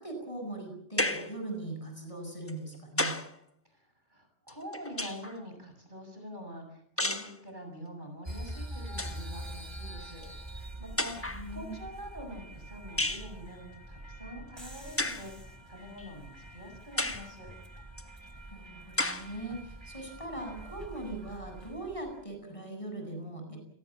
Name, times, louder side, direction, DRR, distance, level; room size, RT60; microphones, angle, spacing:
voice 1, 0.0-3.1 11.2-11.8 18.5-23.6, right 2 dB, 30° left, 4 dB, 8.1 m, -40 dB
sound 1, 1.0-1.4 2.5-3.4 4.5-5.4 7.0-7.4 8.5-8.6 8.9-9.2 10.2-10.3 11.0-11.5 13.0-13.3 15.0-15.3 16.0-16.1 17.0-17.3 18.0-18.1 19.0-19.3, left 2 dB, 15° left, 1.2 m, -32 dB
voice 2, 3.7-17.5, equal, 45° right, 5 dB, 7.1 m, -46 dB
sound 2, 8.2-22.2, right 1 dB, 25° right, 3.0 m, -45 dB
30.0 x 18.5 x 7.5 m, 0.67 s
omnidirectional pair, 1.1 m